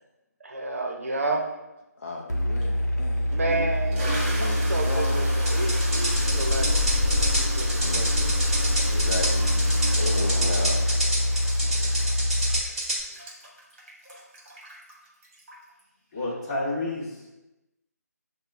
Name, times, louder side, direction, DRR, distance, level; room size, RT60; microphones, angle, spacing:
voice 1, 0.4-1.5 3.3-6.9 7.3-8.3, right 2 dB, 55° right, 2 dB, 0.7 m, -31 dB
voice 2, 2.0-3.4 3.9-5.3 7.8-8.3 8.9-9.5 10.0-10.9, left 3 dB, 45° left, -1 dB, 0.5 m, -35 dB
sound 1, 2.3-12.6, left 1 dB, 75° left, 0.7 m, -25 dB
Toilet flush, 2.6-2.7 3.3-15.8, right 1 dB, 30° right, 1.2 m, -36 dB
sound 2, 5.5-13.0, right 1 dB, 5° right, 1.3 m, -29 dB
voice 3, 16.1-17.3, left 2 dB, 25° left, -6 dB, 1.2 m, -31 dB
6.5 x 2.2 x 3.5 m, 1.0 s
figure-of-eight pair, 155°, 9 cm